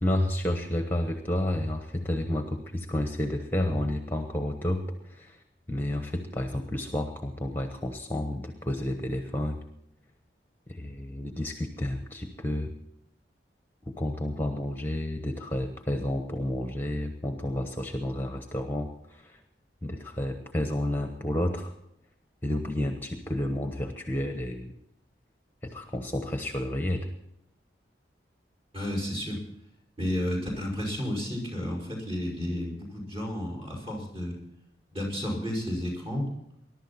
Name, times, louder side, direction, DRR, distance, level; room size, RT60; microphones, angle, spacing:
voice 1, 0.0-5.4 5.7-9.6 10.7-12.7 13.9-19.4 19.8-21.7 22.4-24.7 25.6-27.1, left 1 dB, 10° left, 5 dB, 1.1 m, -31 dB
voice 2, 28.7-29.4 30.0-34.4 34.9-36.3, left 1 dB, 35° right, -1 dB, 5.5 m, -32 dB
21.5 x 11.5 x 4.2 m, 0.80 s
head